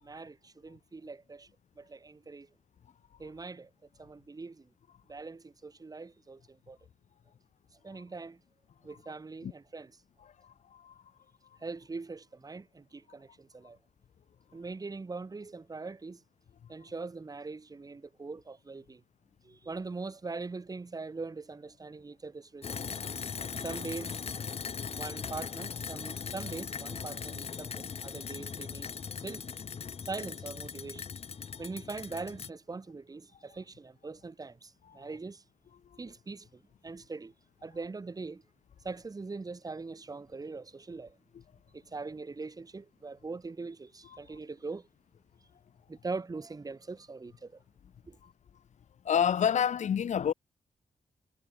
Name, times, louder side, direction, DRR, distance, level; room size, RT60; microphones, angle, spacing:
voice 1, 0.0-1.5 1.8-2.5 3.2-3.7 4.0-4.7 5.1-6.8 7.8-8.4 8.8-9.9 11.6-13.8 14.5-16.2 16.7-19.0 19.4-23.0 23.6-24.2 24.9-28.9 29.2-29.5 30.1-31.0 31.6-35.4 36.0-37.3 37.6-38.4 38.8-41.2 41.7-44.9 45.9-47.6 48.1-48.2, right 3 dB, 30° right, 2.3 m, -42 dB
voice 2, 10.4-11.0 34.9-35.1 35.9-36.0 48.2-48.3 49.0-50.3, left 8 dB, 80° left, 2.1 m, -29 dB
sound 1, 22.6-32.5, left 6 dB, 55° left, 1.9 m, -39 dB
wide cardioid pair, 100°, 12 cm